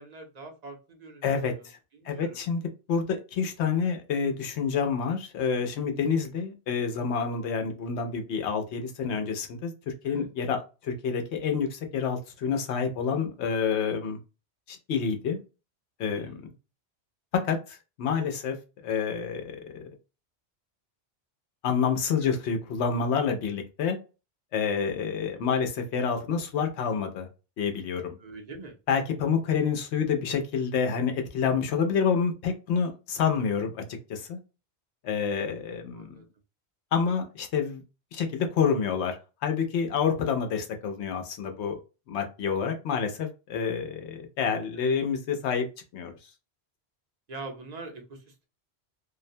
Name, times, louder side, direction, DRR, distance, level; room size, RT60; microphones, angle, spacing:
voice 1, 0.0-2.4 3.8-3.9 10.0-10.3 16.1-16.5 22.2-22.3 28.2-28.8 35.9-36.3 44.7-45.0 47.3-48.5, right 3 dB, 45° right, 0.7 m, -44 dB
voice 2, 1.2-1.8 2.0-2.6 2.9-14.2 14.7-15.4 16.0-16.3 17.3-18.6 18.8-19.9 21.6-24.0 24.5-27.3 27.6-28.2 28.9-33.8 34.1-34.4 35.0-36.2 36.9-37.8 38.1-41.7 42.1-45.7 45.9-46.1, left 6 dB, 80° left, 0.9 m, -28 dB
2.5 x 2.1 x 2.6 m
omnidirectional pair, 1.1 m